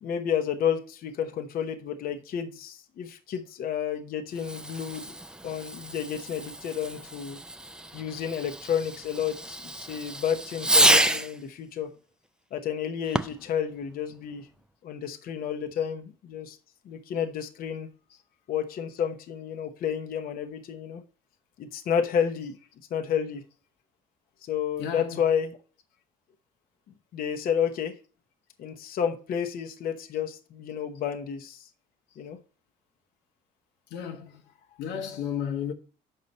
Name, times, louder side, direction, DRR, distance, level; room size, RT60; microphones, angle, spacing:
voice 1, 0.0-5.1 5.4-7.4 7.9-11.9 12.5-14.5 14.8-16.6 16.8-17.9 18.5-21.0 21.6-22.6 22.9-23.4 24.4-25.5 27.1-28.0 28.6-31.7 32.2-32.4, left 8 dB, 60° left, 0.9 m, -31 dB
Fireworks, 4.3-11.4 13.0-13.5, right 1 dB, 5° right, 0.4 m, -28 dB
voice 2, 24.8-25.4 33.9-34.4 34.8-35.7, left 8 dB, 90° left, 1.1 m, -34 dB
6.6 x 5.4 x 4.1 m
cardioid pair, 110°, 17 cm